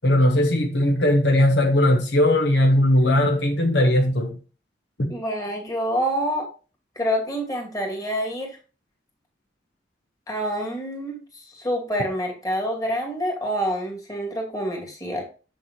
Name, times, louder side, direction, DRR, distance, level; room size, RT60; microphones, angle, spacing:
voice 1, 0.0-4.4 5.0-5.1, left 1 dB, 65° left, 1.3 m, -19 dB
voice 2, 5.1-6.5 7.0-8.6 10.3-15.2, equal, 20° left, 2.5 m, -27 dB
7.5 x 7.2 x 3.1 m
head